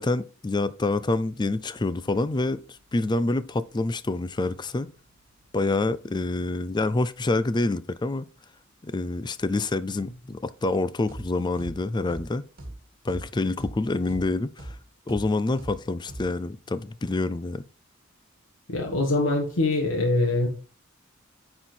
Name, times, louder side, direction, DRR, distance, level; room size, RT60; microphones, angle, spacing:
voice 1, 0.0-2.6 2.9-4.9 5.5-8.3 8.8-12.4 13.0-14.8 15.1-17.6, left 2 dB, 20° left, 0.4 m, -27 dB
sound 1, 11.1-11.3 11.6-11.8 12.1-12.3 12.6-12.8 13.1-13.3 13.6-13.8 14.1-14.3 14.6-14.8 15.1-15.3 15.6-15.8 16.1-16.3, right 1 dB, 50° right, 2.0 m, -38 dB
voice 2, 18.7-20.5, left 2 dB, 75° left, 1.6 m, -23 dB
9.2 x 4.4 x 4.4 m
head